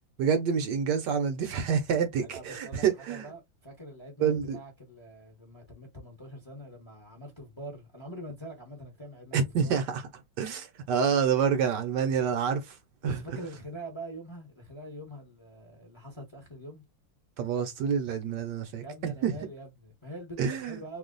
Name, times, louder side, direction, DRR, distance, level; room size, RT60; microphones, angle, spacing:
voice 1, 0.2-3.3 4.2-4.6 9.3-10.0 10.4-12.7 13.0-13.2 17.4-19.3 20.4-20.8, right 7 dB, 70° right, 1.2 m, -27 dB
voice 2, 2.2-10.0 13.0-16.8 18.8-21.0, right 1 dB, 20° left, 0.7 m, -44 dB
3.1 x 2.3 x 3.8 m
omnidirectional pair, 2.1 m